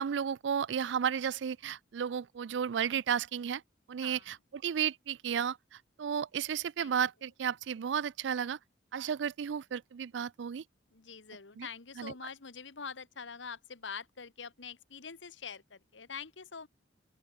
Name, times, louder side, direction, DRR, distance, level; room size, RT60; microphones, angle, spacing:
voice 1, 0.0-3.6 3.9-5.6 6.0-8.6 8.9-10.6 11.6-11.7 12.0-12.1, right 8 dB, 75° right, 0.4 m, -33 dB
voice 2, 10.9-16.7, left 6 dB, 80° left, 1.4 m, -45 dB
open air
head